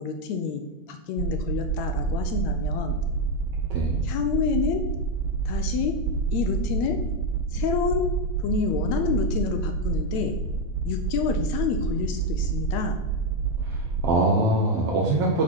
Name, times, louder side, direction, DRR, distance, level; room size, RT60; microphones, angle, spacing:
voice 1, 0.0-3.0 4.0-4.9 5.4-6.0 6.3-7.0 7.5-8.1 8.4-10.3 10.8-13.0, left 7 dB, 75° left, 6 dB, 1.7 m, -28 dB
sound 1, 1.2-14.1, right 5 dB, 90° right, 2.1 m, -28 dB
voice 2, 13.6-15.4, right 2 dB, 65° right, -1 dB, 1.8 m, -23 dB
8.6 x 4.4 x 6.1 m, 1.1 s
omnidirectional pair, 3.6 m